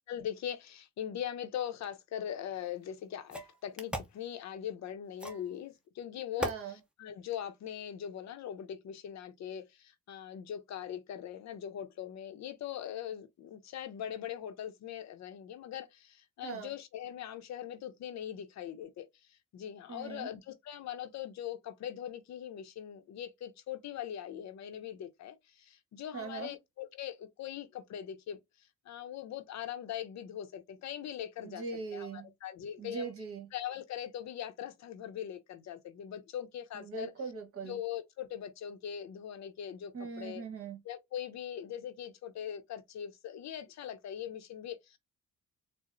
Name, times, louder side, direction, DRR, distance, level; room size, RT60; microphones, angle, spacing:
voice 1, 0.1-6.5 7.0-31.6 31.9-33.1 33.5-37.1 37.6-40.4 40.8-45.0, left 10 dB, 65° left, 0.6 m, -41 dB
sound 1, 2.6-2.7 3.3-4.2 5.2-5.5 6.4-6.6, right 1 dB, 5° right, 0.7 m, -38 dB
voice 2, 6.4-6.7 16.4-16.7 19.9-20.3 26.1-26.5 31.4-32.3 32.8-33.5 36.7-37.8 39.9-40.8, right 5 dB, 50° right, 1.3 m, -40 dB
4.1 x 2.0 x 2.5 m
cardioid pair, 90°, 30 cm